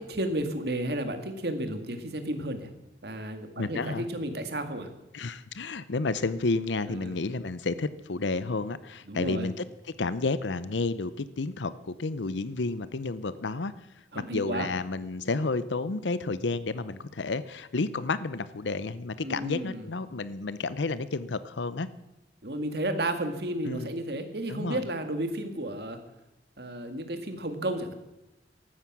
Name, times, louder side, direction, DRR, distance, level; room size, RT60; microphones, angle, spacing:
voice 1, 0.0-2.7 3.0-4.9 6.9-7.1 9.1-9.5 14.1-14.7 19.2-19.9 22.4-26.0 26.6-27.9, right 1 dB, 60° right, 8 dB, 2.0 m, -32 dB
voice 2, 3.6-4.1 5.1-9.6 10.0-13.7 14.1-21.9 23.6-23.9 24.5-24.9, left 3 dB, 85° left, 15 dB, 0.7 m, -31 dB
15.0 x 13.0 x 6.1 m, 0.93 s
head